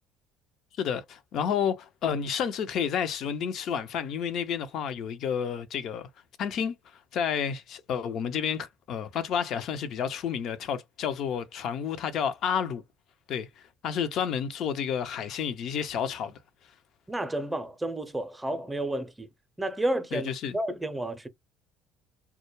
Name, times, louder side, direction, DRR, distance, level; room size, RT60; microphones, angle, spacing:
voice 1, 0.8-6.1 6.4-6.8 7.1-12.8 13.3-13.5 13.8-16.4 20.1-20.6, left 7 dB, 60° left, 0.5 m, -30 dB
voice 2, 17.1-19.3 19.6-21.3, right 1 dB, 15° right, 0.6 m, -31 dB
2.2 x 2.1 x 3.0 m
hypercardioid pair, 60°, 0 cm